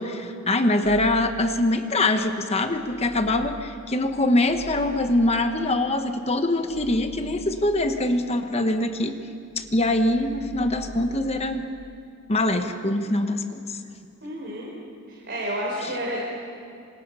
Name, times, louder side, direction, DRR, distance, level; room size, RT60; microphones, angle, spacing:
voice 1, 0.0-9.1 9.6-11.7 12.3-13.8, left 1 dB, 30° left, 7 dB, 1.2 m, -23 dB
sound 1, 0.8-2.3 2.7-9.2 9.5-11.8, equal, 5° left, 0.7 m, -45 dB
voice 2, 14.2-14.7 15.1-16.3, equal, 50° right, -4 dB, 4.7 m, -30 dB
27.0 x 25.5 x 5.6 m, 2.4 s
head